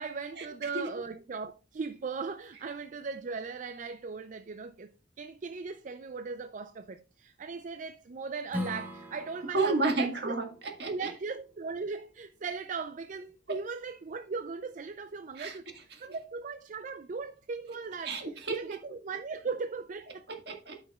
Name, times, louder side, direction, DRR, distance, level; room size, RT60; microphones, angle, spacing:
voice 1, 0.0-4.9 5.2-10.3 10.9-15.6 16.0-20.2, right 4 dB, 45° right, 0.4 m, -38 dB
Strum, 8.5-13.7, left 1 dB, 10° right, 1.3 m, -44 dB
voice 2, 9.5-11.1 15.3-16.0 18.0-18.7 20.3-20.8, right 3 dB, 65° right, 1.7 m, -32 dB
13.0 x 5.6 x 2.3 m
head